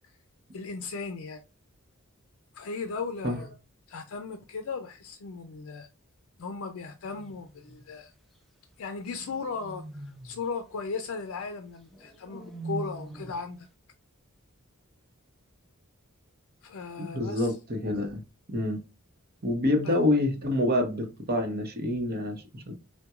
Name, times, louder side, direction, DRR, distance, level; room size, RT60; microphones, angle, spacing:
voice 1, 0.5-1.4 2.5-3.5 3.9-5.9 6.4-8.1 8.8-13.7 16.6-17.5 19.8-20.0, left 4 dB, 70° left, 0.4 m, -37 dB
sound 1, 7.0-7.9 9.2-10.5 11.9-13.5, right 2 dB, ahead, 0.6 m, -42 dB
voice 2, 17.0-18.2 18.5-18.8 19.4-22.7, left 1 dB, 45° right, 0.9 m, -27 dB
5.7 x 2.2 x 2.4 m
head